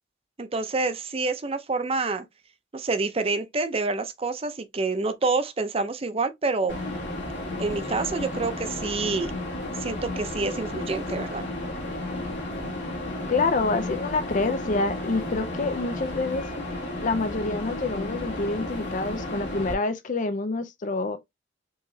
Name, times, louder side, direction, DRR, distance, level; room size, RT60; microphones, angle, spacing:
voice 1, 0.4-2.2 2.7-6.7 7.6-9.3 9.8-11.4, right 3 dB, 30° right, 0.6 m, -27 dB
sound 1, 6.7-19.7, left 1 dB, 60° left, 2.0 m, -33 dB
voice 2, 13.3-16.4 17.0-21.2, left 3 dB, 40° left, 0.4 m, -27 dB
4.7 x 3.0 x 2.7 m
head